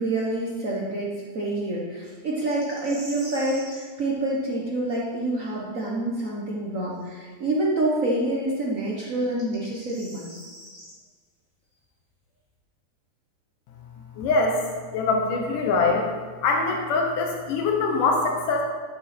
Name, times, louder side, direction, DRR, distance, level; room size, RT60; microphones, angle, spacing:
voice 1, 0.0-10.3, right 1 dB, 80° right, -4 dB, 0.7 m, -27 dB
sound 1, 2.5-3.9 7.0-7.1 9.2-10.9, equal, 10° right, 2.5 m, -43 dB
voice 2, 14.2-14.6 14.9-16.1 16.4-18.6, left 3 dB, 85° left, 1 dB, 2.7 m, -23 dB
11.5 x 9.1 x 4.4 m, 1.5 s
omnidirectional pair, 3.6 m